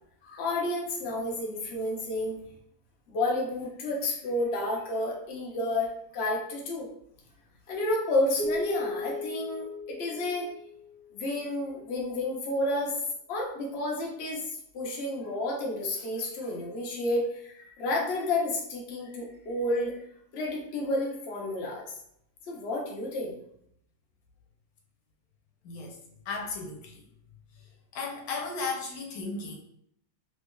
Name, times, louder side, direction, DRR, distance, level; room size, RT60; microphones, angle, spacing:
voice 1, 0.2-2.4 3.1-6.9 7.7-10.5 11.1-13.0 13.3-20.0 20.3-21.9 22.5-23.4, left 1 dB, 55° left, -2 dB, 0.9 m, -31 dB
Keyboard (musical), 8.4-11.4, left 2 dB, 85° right, 1.4 m, -36 dB
voice 2, 25.6-26.0 26.2-27.0 27.6-27.7 27.9-29.6, left 4 dB, 85° left, 1 dB, 1.2 m, -35 dB
3.3 x 3.0 x 2.2 m, 0.70 s
omnidirectional pair, 1.5 m